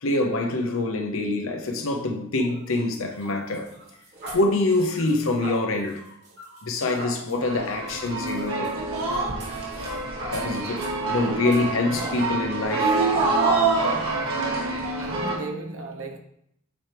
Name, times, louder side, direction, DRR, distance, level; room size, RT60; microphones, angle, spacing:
voice 1, 0.0-3.7 4.3-6.0 6.6-8.8 9.8-13.1, left 2 dB, 75° left, 0.8 m, -25 dB
sound 1, 2.4-11.1 11.5-11.6 12.1-12.3, right 1 dB, 55° right, 2.5 m, -42 dB
sound 2, 7.4-15.3, right 3 dB, 90° right, 1.8 m, -26 dB
voice 2, 14.8-16.2, right 2 dB, 70° right, 1.0 m, -35 dB
8.7 x 4.5 x 3.4 m
head